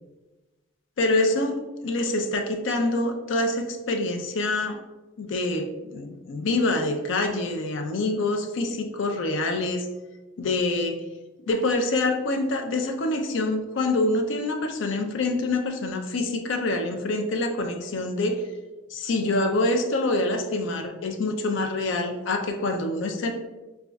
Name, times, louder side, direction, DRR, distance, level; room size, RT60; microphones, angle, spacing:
voice 1, 1.0-4.8 5.2-9.9 10.4-11.0 11.5-18.4 18.9-23.3, left 2 dB, 70° left, 5 dB, 0.4 m, -26 dB
5.0 x 2.3 x 2.3 m, 1.1 s
head